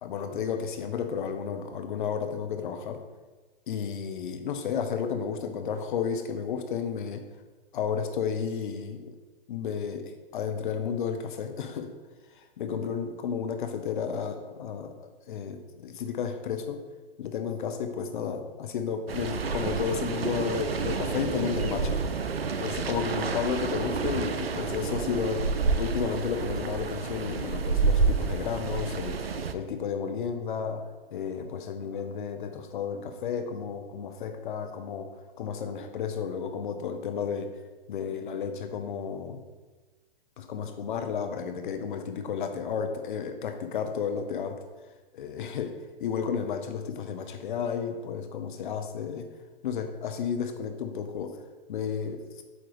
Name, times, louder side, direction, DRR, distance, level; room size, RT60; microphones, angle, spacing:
voice 1, 0.0-3.0 3.7-7.2 7.7-9.1 9.5-11.9 12.3-16.8 17.2-22.0 22.6-25.5 25.8-29.2 29.5-30.8 31.1-37.5 37.9-39.4 40.4-44.6 45.1-49.3 49.6-51.4 51.7-52.2, left 7 dB, 55° left, 6 dB, 0.9 m, -32 dB
sound 1, 19.1-29.5, right 5 dB, 80° right, 0.6 m, -29 dB
8.1 x 4.5 x 3.2 m, 1.3 s
figure-of-eight pair, 115°, 30 cm